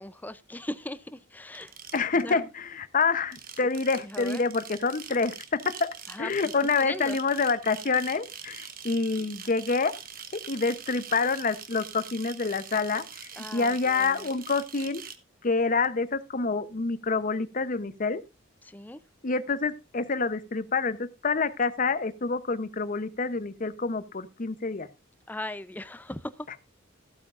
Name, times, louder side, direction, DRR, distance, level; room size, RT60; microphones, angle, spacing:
voice 1, 0.0-1.8 2.2-2.5 4.0-4.4 6.1-7.2 13.4-14.3 18.6-19.0 25.3-26.6, left 1 dB, 10° left, 0.5 m, -39 dB
sound 1, 1.5-2.4 3.2-15.2, right 8 dB, 45° right, 1.1 m, -44 dB
voice 2, 1.9-5.9 6.2-9.9 10.3-15.0 15.4-18.2 19.2-24.9, left 4 dB, 45° left, 0.8 m, -27 dB
15.0 x 8.7 x 2.5 m
head